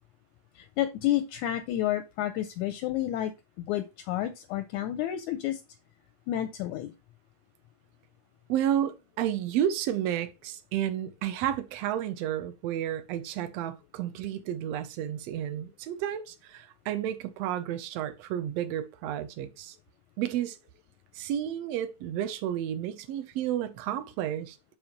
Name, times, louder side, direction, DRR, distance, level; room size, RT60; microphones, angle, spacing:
voice 1, 0.6-3.3 3.6-5.6 6.3-6.9, left 13 dB, 80° left, 1.8 m, -30 dB
voice 2, 8.5-19.7 20.2-20.6 21.1-24.6, right 11 dB, 70° right, 1.6 m, -31 dB
7.1 x 3.4 x 5.8 m
omnidirectional pair, 3.8 m